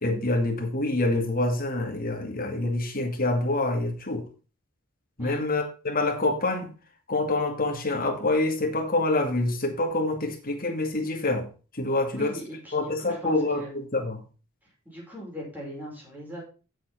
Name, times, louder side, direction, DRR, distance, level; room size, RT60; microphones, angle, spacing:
voice 1, 0.0-4.2 5.2-6.7 7.1-11.5 11.8-12.3 12.7-14.2, left 2 dB, 45° left, 2 dB, 2.2 m, -26 dB
voice 2, 12.1-13.8 14.8-16.4, equal, 10° right, -3 dB, 5.1 m, -40 dB
7.6 x 7.2 x 5.3 m, 0.35 s
head